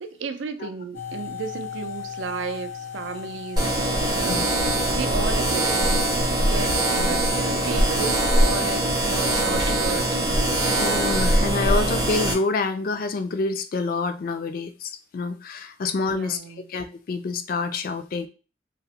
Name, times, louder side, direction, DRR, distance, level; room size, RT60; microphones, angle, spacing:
voice 1, 0.0-4.4 4.9-6.0 6.4-10.3 16.1-16.7, right 5 dB, 80° right, 0.4 m, -34 dB
sound 1, 0.9-8.8, left 8 dB, 85° left, 0.8 m, -37 dB
sound 2, 3.6-12.3, right 1 dB, 20° right, 0.5 m, -22 dB
voice 2, 10.6-16.4 16.7-18.3, left 3 dB, 50° left, 0.3 m, -27 dB
2.9 x 2.0 x 2.7 m
head